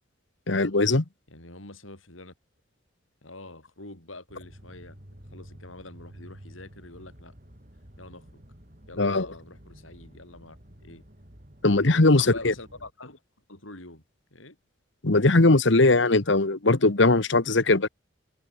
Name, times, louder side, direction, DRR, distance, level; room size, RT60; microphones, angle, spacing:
voice 1, 0.5-1.0 9.0-9.3 11.6-12.5 15.0-17.9, left 2 dB, 65° left, 1.4 m, -20 dB
voice 2, 1.3-2.3 3.2-5.0 5.3-7.3 8.0-8.4 8.9-10.6 10.8-11.0 11.9-13.2 13.5-14.0 14.3-14.6, left 2 dB, 85° left, 7.3 m, -45 dB
sound 1, 4.3-12.9, equal, 45° right, 4.6 m, -50 dB
head